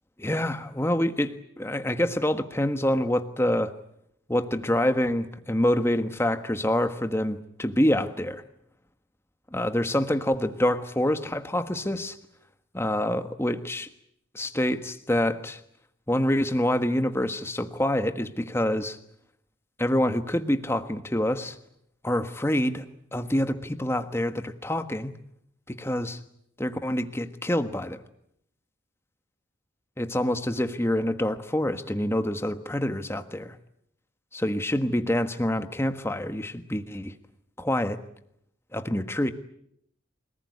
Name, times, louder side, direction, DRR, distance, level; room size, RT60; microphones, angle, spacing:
voice 1, 0.2-3.7 4.3-8.4 9.5-12.2 12.7-13.9 14.3-15.6 16.1-19.0 19.8-21.6 22.0-22.8 23.1-25.1 25.7-26.2 26.6-28.0 30.0-33.6 34.3-37.1 37.6-38.0 38.7-39.3, left 1 dB, 10° left, 9 dB, 1.4 m, -26 dB
28.0 x 19.5 x 9.6 m, 0.74 s
head